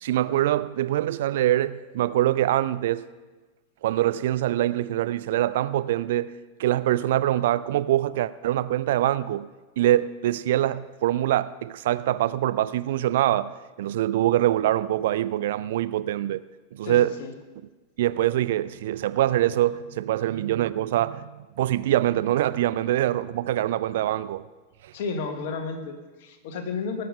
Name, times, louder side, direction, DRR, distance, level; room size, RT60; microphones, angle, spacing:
voice 1, 0.0-3.1 3.8-6.3 6.6-9.5 9.8-16.4 16.7-17.2 18.0-21.3 21.6-24.5 24.8-24.9, right 13 dB, 55° right, 0.4 m, -24 dB
voice 2, 16.8-17.4 24.9-27.1, left 4 dB, 50° left, 1.6 m, -32 dB
18.5 x 6.8 x 5.6 m
figure-of-eight pair, 90°, 0 cm